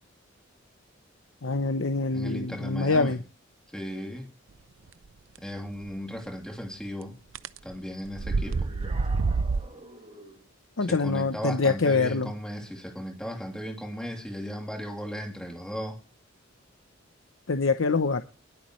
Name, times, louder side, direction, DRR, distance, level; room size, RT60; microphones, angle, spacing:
voice 1, 1.4-3.2 10.8-12.3 17.5-18.2, left 4 dB, 75° left, 9 dB, 0.8 m, -25 dB
voice 2, 2.1-3.2 3.7-4.3 5.4-7.2 7.6-8.7 10.8-16.0, equal, 5° left, 2 dB, 3.0 m, -36 dB
sound 1, 5.9-6.0 7.4-7.6 8.1-9.7, right 4 dB, 75° right, 0.6 m, -27 dB
sound 2, 8.2-10.5, right 2 dB, 30° right, 5.2 m, -46 dB
21.0 x 8.5 x 3.2 m, 0.35 s
head